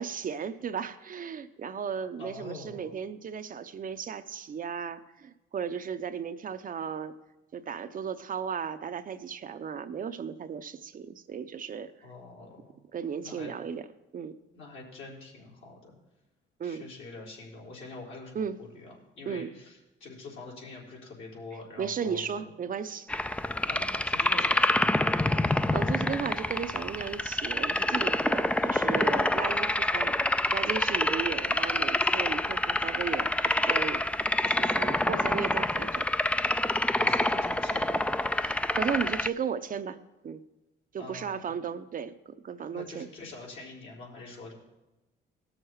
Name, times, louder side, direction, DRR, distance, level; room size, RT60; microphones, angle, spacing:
voice 1, 0.0-7.1 7.5-11.9 12.9-13.8 14.1-14.4 16.6-16.9 18.3-18.6 19.3-19.5 21.8-23.1 25.4-30.2 30.5-34.0 34.4-36.1 38.4-40.4 40.9-43.1, right 7 dB, 45° right, 11 dB, 0.6 m, -35 dB
voice 2, 2.2-2.9 12.0-12.7 13.2-13.5 14.5-15.9 16.6-22.5 23.3-25.0 37.0-38.0 41.0-41.6 42.7-44.5, left 3 dB, 75° left, -4 dB, 4.0 m, -45 dB
sound 1, 23.1-39.3, left 1 dB, 5° left, 0.3 m, -27 dB
18.5 x 6.5 x 4.6 m, 1.0 s
cardioid pair, 90°, 20 cm